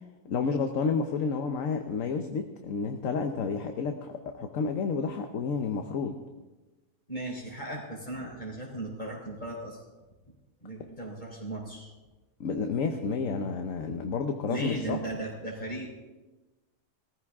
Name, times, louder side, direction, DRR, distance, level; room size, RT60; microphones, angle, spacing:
voice 1, 0.2-6.1 12.4-15.0, left 5 dB, 60° left, 5 dB, 1.2 m, -30 dB
voice 2, 7.1-9.8 10.6-11.9 14.5-16.0, right 2 dB, 30° left, -1 dB, 4.1 m, -36 dB
19.5 x 14.5 x 3.6 m, 1.2 s
omnidirectional pair, 1.6 m